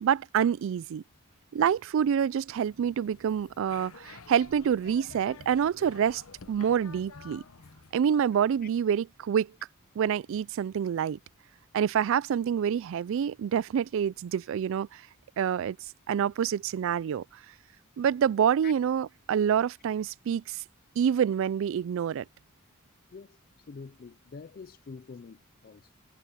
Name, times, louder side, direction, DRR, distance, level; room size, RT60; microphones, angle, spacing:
voice 1, 0.0-1.0 1.5-6.2 6.5-7.4 7.9-9.5 10.0-11.2 11.7-15.0 15.4-15.8 16.1-17.2 18.0-20.6 21.0-22.2, right 8 dB, 65° right, 0.3 m, -27 dB
sound 1, 2.5-7.9, left 4 dB, 85° left, 0.9 m, -50 dB
voice 2, 23.1-25.9, left 5 dB, 45° left, 0.4 m, -46 dB
head